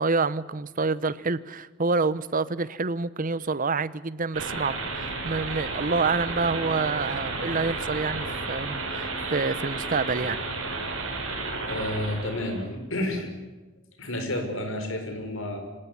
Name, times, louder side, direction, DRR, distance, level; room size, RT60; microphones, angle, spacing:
voice 1, 0.0-10.4, right 4 dB, 40° right, 0.9 m, -27 dB
sound 1, 4.3-12.6, right 3 dB, 80° right, 6.1 m, -32 dB
voice 2, 11.7-13.3 14.0-15.6, left 1 dB, 75° left, 5.0 m, -30 dB
25.5 x 18.0 x 9.7 m
head